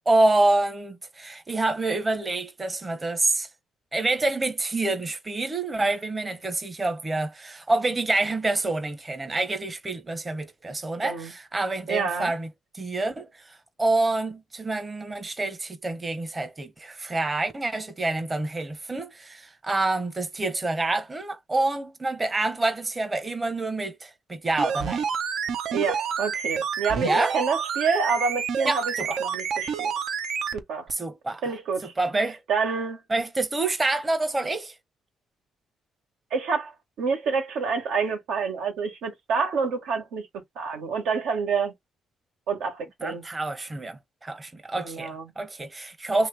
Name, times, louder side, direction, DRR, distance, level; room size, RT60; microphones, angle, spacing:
voice 1, 0.1-3.5 3.9-12.5 12.7-25.0 27.0-27.4 28.6-29.2 30.9-31.4 32.0-32.4 33.1-34.7 43.0-46.3, right 2 dB, 25° right, 0.8 m, -27 dB
voice 2, 11.0-11.3 11.9-12.3 25.7-28.9 29.2-29.9 30.5-30.9 31.4-31.9 32.5-33.0 36.3-36.7 37.0-40.3 40.5-41.7 42.5-43.2 44.8-45.3, right 5 dB, 85° right, 1.4 m, -28 dB
sound 1, 24.5-30.6 30.9-31.0, right 7 dB, 65° right, 0.6 m, -29 dB
2.9 x 2.9 x 3.3 m
cardioid pair, 90°, 0 cm